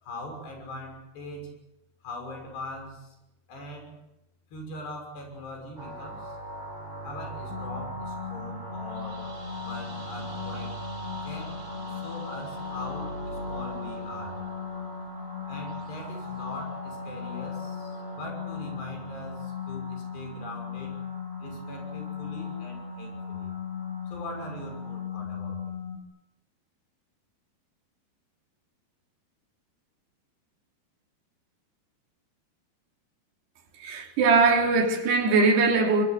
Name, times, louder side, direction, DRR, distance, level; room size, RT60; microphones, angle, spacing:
voice 1, 0.0-1.5 2.0-3.1 3.5-3.9 4.5-6.4 7.0-9.3 9.6-10.7 11.2-11.5 11.9-14.4 15.5-21.0 21.4-23.5 24.1-25.7, left 1 dB, 85° left, 8.4 m, -41 dB
sound 1, 5.8-25.0, right 1 dB, 30° right, 7.4 m, -41 dB
sound 2, 7.5-26.0, left 6 dB, 70° left, 4.8 m, -38 dB
voice 2, 33.8-36.0, right 4 dB, 80° right, 5.2 m, -21 dB
25.0 x 22.0 x 8.2 m
omnidirectional pair, 4.7 m